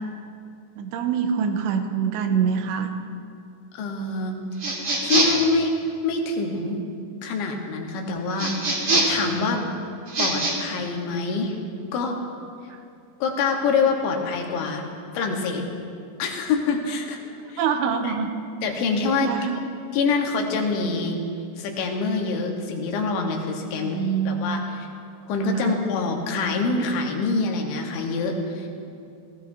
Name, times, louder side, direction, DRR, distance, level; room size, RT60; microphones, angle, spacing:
voice 1, 0.8-2.9 5.0-5.1 17.6-18.3 19.2-19.6 23.7-24.6 25.5-25.7, right 7 dB, 85° right, 6 dB, 2.9 m, -25 dB
voice 2, 3.7-4.4 5.0-5.8 6.0-6.8 7.2-8.5 9.1-9.6 10.2-11.6 11.9-12.2 13.2-14.9 15.1-15.6 16.2-17.2 17.5-17.6 18.0-18.2 18.6-19.3 19.9-21.2 21.6-24.0 24.3-24.9 25.3-28.7, left 4 dB, 85° left, 2 dB, 3.6 m, -25 dB
sound 1, 4.6-5.5 8.4-9.3 10.1-10.5, right 2 dB, 50° right, 1.4 m, -23 dB
18.5 x 15.5 x 2.7 m, 2.4 s
omnidirectional pair, 5.1 m